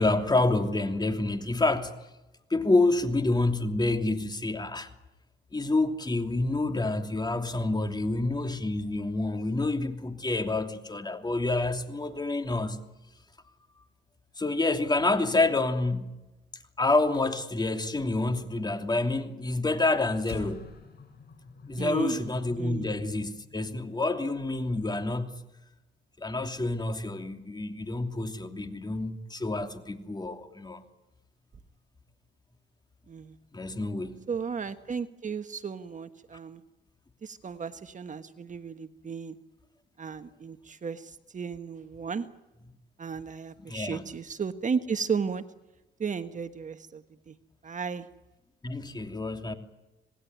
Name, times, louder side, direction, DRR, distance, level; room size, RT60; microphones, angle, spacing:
voice 1, 0.0-1.9 2.5-4.9 5.5-12.8 14.4-16.2 16.8-20.7 21.7-25.4 26.2-30.8 33.5-34.3 43.7-44.0 48.6-49.5, left 2 dB, 20° left, 3.0 m, -28 dB
sound 1, 20.2-24.8, left 5 dB, 55° left, 7.0 m, -47 dB
voice 2, 21.8-22.2 22.6-22.9 33.1-33.3 34.3-36.6 37.2-39.4 40.0-42.3 43.0-45.4 46.0-47.3 47.6-48.1, right 6 dB, 40° right, 1.4 m, -34 dB
27.5 x 19.5 x 9.4 m
cardioid pair, 90°, 20 cm